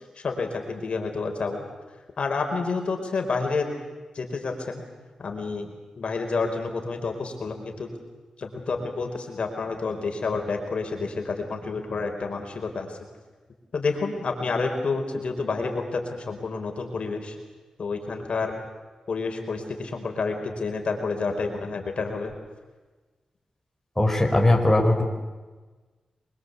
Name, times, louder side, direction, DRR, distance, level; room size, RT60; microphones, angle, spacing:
voice 1, 0.2-1.6 2.2-3.7 4.1-4.8 5.2-7.9 8.4-13.0 13.7-17.3 17.8-18.6 19.1-22.3, left 4 dB, 65° left, 3 dB, 4.6 m, -29 dB
voice 2, 24.0-25.0, left 1 dB, 10° left, 2 dB, 4.7 m, -19 dB
26.0 x 23.0 x 8.2 m, 1.3 s
cardioid pair, 70°, 2 cm